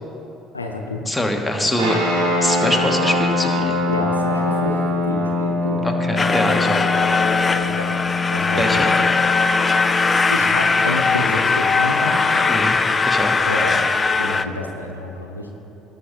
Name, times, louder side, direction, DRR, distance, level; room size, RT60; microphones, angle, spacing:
voice 1, 0.5-1.0 3.9-4.8 5.0-5.8 7.5-8.0 8.3-9.1 9.8-9.9 10.3-12.2 13.4-13.9 14.2-15.5, left 2 dB, 85° left, 2 dB, 0.7 m, -28 dB
voice 2, 1.0-2.0 2.4-3.8 5.8-6.9 8.6-8.9 12.5-12.7 13.0-13.4, left 1 dB, 5° left, 2 dB, 1.4 m, -23 dB
sound 1, 1.8-12.4, left 2 dB, 75° right, 2.3 m, -24 dB
sound 2, 6.2-14.4, left 4 dB, 25° left, 0.4 m, -19 dB
18.0 x 6.2 x 4.0 m, 3.0 s
figure-of-eight pair, 55°, 0 cm